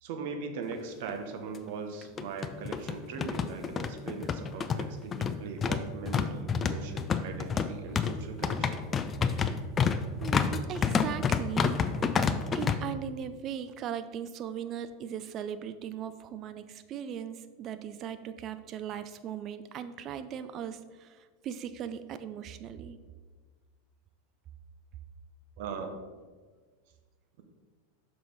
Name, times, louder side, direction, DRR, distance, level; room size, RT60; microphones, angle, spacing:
voice 1, 0.0-8.8 25.6-26.0, right 5 dB, 55° right, 5 dB, 0.9 m, -40 dB
sound 1, 0.7-0.8 1.1-1.2 2.0-12.8, left 6 dB, 25° left, 0.4 m, -29 dB
voice 2, 10.2-23.0, right 9 dB, 40° right, 11 dB, 0.4 m, -39 dB
5.9 x 5.5 x 3.9 m, 1.4 s
figure-of-eight pair, 85°, 0 cm